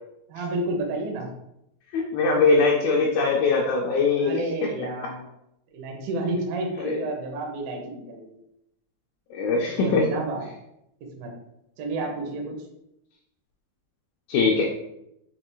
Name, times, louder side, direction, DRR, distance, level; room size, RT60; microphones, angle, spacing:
voice 1, 0.3-1.3 4.2-5.3 5.7-8.4 9.6-10.4 11.2-11.3 11.8-12.6, right 2 dB, 75° right, 0 dB, 2.2 m, -31 dB
voice 2, 1.9-4.4 6.8-7.0 9.3-10.1 14.3-14.6, left 4 dB, 85° left, -1 dB, 2.1 m, -21 dB
6.7 x 2.4 x 3.0 m, 0.82 s
omnidirectional pair, 5.0 m